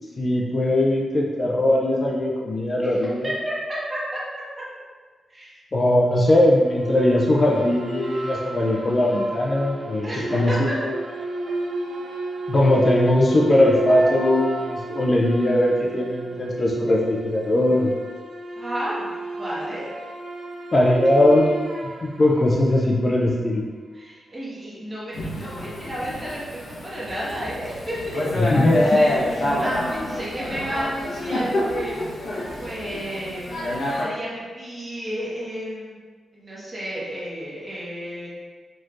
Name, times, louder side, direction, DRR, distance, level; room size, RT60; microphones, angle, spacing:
voice 1, 0.2-3.3 5.7-10.5 10.8-10.9 12.5-18.0 20.7-21.6 22.0-23.6 28.4-28.8, left 1 dB, 35° left, -2 dB, 0.4 m, -20 dB
voice 2, 3.2-4.2 5.3-5.6 10.0-10.8 18.5-19.1 19.4-19.8 23.9-32.0 32.6-33.6 33.9-36.0 36.3-38.3, equal, 25° right, -8 dB, 1.1 m, -32 dB
sound 1, 6.6-23.2, right 2 dB, 55° right, 0.5 m, -32 dB
Thunder / Rain, 25.1-34.0, left 1 dB, 75° left, 0.9 m, -27 dB
4.2 x 3.0 x 2.4 m, 1.4 s
wide cardioid pair, 150°, 0 cm